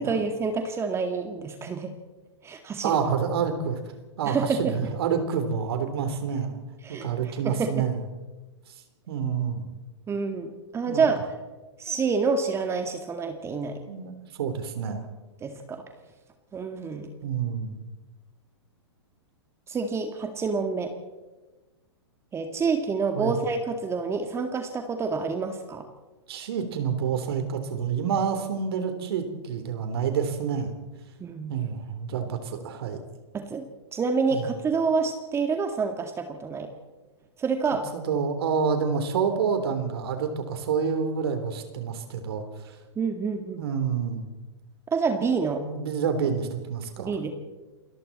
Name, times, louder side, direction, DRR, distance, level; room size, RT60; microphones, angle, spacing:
voice 1, 0.0-1.9 2.4-3.0 4.2-4.7 6.8-7.1 7.4-7.9 10.1-11.2 11.8-13.8 15.4-15.8 16.5-17.1 19.7-20.9 22.3-25.8 31.2-31.6 33.3-33.7 33.9-36.7 37.4-37.8 43.0-43.7 44.9-45.7 47.0-47.3, right 5 dB, 20° right, 6 dB, 2.1 m, -27 dB
voice 2, 2.8-3.8 4.2-6.6 6.9-8.0 9.1-9.7 10.9-11.0 13.9-14.1 14.4-15.1 17.2-17.8 23.2-23.4 26.3-30.7 31.5-33.0 34.3-34.4 37.9-42.8 43.6-44.3 45.6-47.2, right 6 dB, 60° right, 7 dB, 3.7 m, -28 dB
28.5 x 21.5 x 4.3 m, 1.2 s
hypercardioid pair, 110°, 15 cm